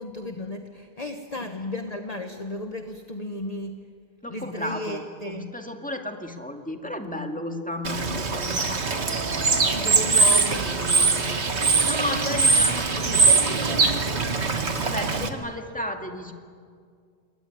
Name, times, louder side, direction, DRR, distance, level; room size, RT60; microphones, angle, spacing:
voice 1, 0.0-3.8 4.3-5.5 9.7-10.8 15.1-15.3, left 1 dB, 35° left, 5 dB, 1.3 m, -34 dB
voice 2, 4.2-8.8 9.5-9.7 11.2-11.4 11.8-14.0 14.8-16.3, left 1 dB, 5° left, 4 dB, 2.0 m, -34 dB
sound 1, 7.0-7.9 9.0-14.0, right 1 dB, 45° right, 2.3 m, -38 dB
Bird / Water, 7.8-15.3, right 4 dB, 80° right, 1.9 m, -22 dB
27.5 x 22.5 x 9.6 m, 2.2 s
omnidirectional pair, 1.1 m